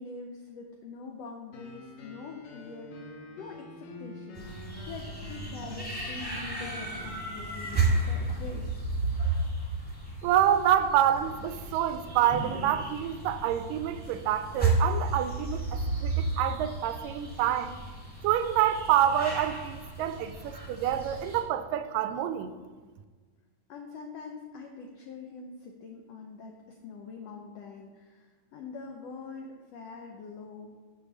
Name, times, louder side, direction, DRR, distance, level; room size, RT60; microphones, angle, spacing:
voice 1, 0.0-4.5 4.9-8.9 23.7-30.7, left 4 dB, 80° left, 1.4 m, -44 dB
sound 1, 1.5-7.0, left 2 dB, 65° left, 2.1 m, -46 dB
sound 2, 4.4-21.4, right 3 dB, 5° left, 1.7 m, -33 dB
voice 2, 10.2-17.8 18.2-22.5, right 10 dB, 90° right, 2.2 m, -27 dB
6.8 x 6.8 x 6.2 m
omnidirectional pair, 3.8 m